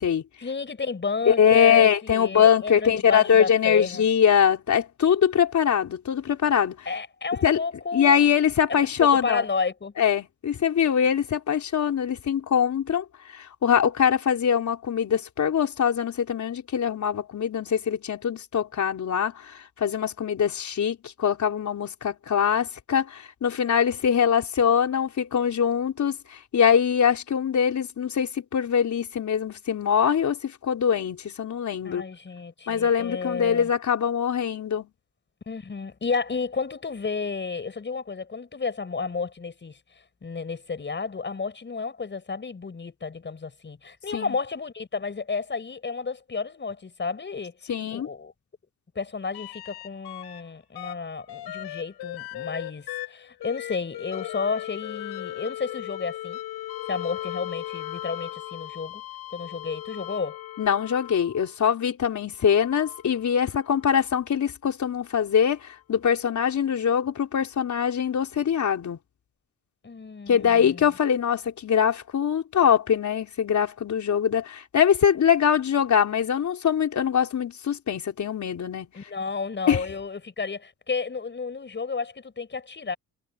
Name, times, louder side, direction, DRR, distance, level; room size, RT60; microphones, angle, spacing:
voice 1, 0.4-4.0 6.9-8.2 9.0-9.9 31.8-33.7 35.5-39.8 40.2-47.6 47.9-48.3 49.0-56.4 56.9-59.0 59.3-60.4 69.8-70.8 78.9-83.0, left 4 dB, 30° left, 6.7 m, -32 dB
voice 2, 1.3-6.9 7.4-7.6 7.9-9.4 10.0-32.0 32.7-34.9 44.1-44.4 47.7-48.1 60.6-69.0 70.3-78.9 79.7-79.9, left 8 dB, 50° left, 4.4 m, -23 dB
sound 1, 49.3-50.4 50.7-61.5 62.4-63.9 65.7-65.8, left 14 dB, 80° left, 3.7 m, -37 dB
cardioid pair, 105°, 37 cm